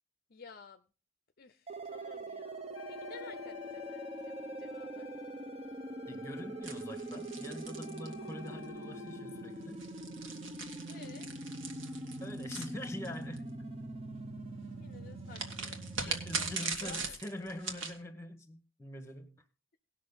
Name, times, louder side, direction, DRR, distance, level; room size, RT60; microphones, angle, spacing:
voice 1, 0.3-0.8 1.4-5.1 10.9-11.3 14.8-17.2, left 5 dB, 45° left, 0.6 m, -53 dB
sound 1, 1.7-16.6, right 1 dB, 30° right, 0.8 m, -43 dB
Wind instrument woodwind instrument, 2.7-9.7, left 4 dB, 90° left, 0.6 m, -53 dB
voice 2, 6.1-9.8 12.2-13.4 16.1-19.3, left 1 dB, 15° left, 1.2 m, -44 dB
sound 2, 6.6-8.6 9.6-13.4 15.3-18.0, right 4 dB, 70° right, 1.7 m, -40 dB
18.5 x 6.3 x 4.0 m
head